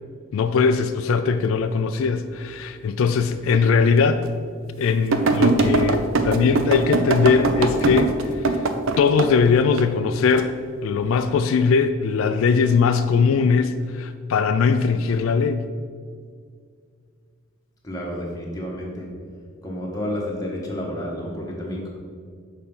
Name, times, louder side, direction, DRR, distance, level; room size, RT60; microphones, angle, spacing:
voice 1, 0.3-4.2 4.8-8.7 9.0-10.5 10.8-15.6, left 5 dB, 80° left, 9 dB, 0.3 m, -20 dB
sound 1, 3.5-3.6 4.2-4.3 5.1-9.3 9.8-10.4 11.1-11.4, right 3 dB, 75° right, 0.5 m, -21 dB
voice 2, 17.8-19.1 19.6-21.9, left 1 dB, 15° left, -3 dB, 1.2 m, -30 dB
6.6 x 4.4 x 5.5 m, 2.1 s
head